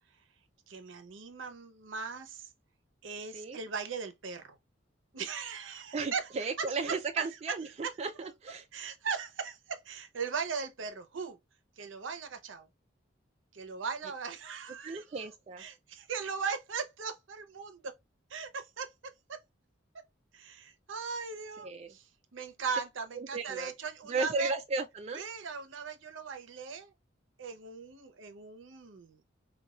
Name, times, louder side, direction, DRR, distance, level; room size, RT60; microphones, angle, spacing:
voice 1, 0.7-2.5 3.0-4.6 5.1-6.3 7.8-7.9 8.7-11.4 11.8-12.7 13.5-15.3 15.6-17.9 18.3-19.4 20.3-22.0 22.3-24.5 25.1-26.9 27.4-29.2, right 5 dB, 80° right, 0.6 m, -39 dB
voice 2, 5.9-8.7 14.8-15.6 21.6-22.0 23.2-23.7 24.1-25.2, right 4 dB, 35° right, 0.3 m, -35 dB
4.1 x 2.3 x 2.3 m
head